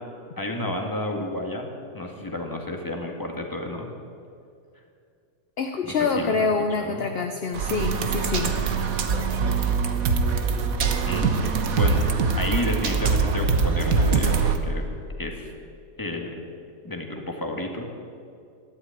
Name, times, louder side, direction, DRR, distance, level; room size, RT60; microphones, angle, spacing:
voice 1, 0.4-1.7 1.9-3.9 6.2-6.5 6.8-7.1 11.0-12.0 12.4-14.8 15.2-15.5 16.0-16.3 16.8-17.8, left 1 dB, 10° left, 2 dB, 1.7 m, -31 dB
voice 2, 5.6-8.5, left 4 dB, 50° left, 5 dB, 0.8 m, -26 dB
sound 1, 7.5-14.6, right 5 dB, 60° right, 1.4 m, -23 dB
13.5 x 11.0 x 9.0 m, 2.4 s
omnidirectional pair, 1.8 m